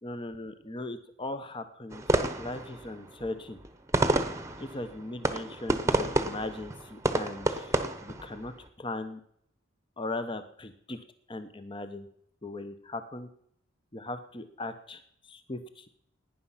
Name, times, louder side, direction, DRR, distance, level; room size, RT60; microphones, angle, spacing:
voice 1, 0.0-2.0 2.4-3.6 4.6-9.2 10.0-12.1 12.4-13.3 13.9-15.9, left 2 dB, 25° left, 10 dB, 0.8 m, -39 dB
sound 1, 1.9-8.7, right 2 dB, 15° right, 1.0 m, -30 dB
17.0 x 10.0 x 5.7 m, 0.69 s
head